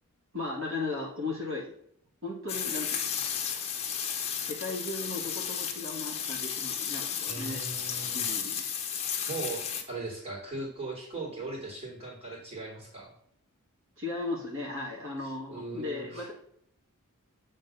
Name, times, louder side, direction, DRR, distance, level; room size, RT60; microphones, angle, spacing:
voice 1, 0.3-1.7 2.2-3.3 4.4-7.6 8.1-8.6 14.0-16.3, left 3 dB, 60° right, -4 dB, 2.1 m, -36 dB
sound 1, 2.5-9.8, left 8 dB, 30° left, 1.0 m, -33 dB
voice 2, 7.2-8.7 9.3-13.1 15.2-16.3, right 3 dB, 25° right, -4 dB, 2.9 m, -39 dB
8.1 x 3.9 x 5.3 m, 0.68 s
head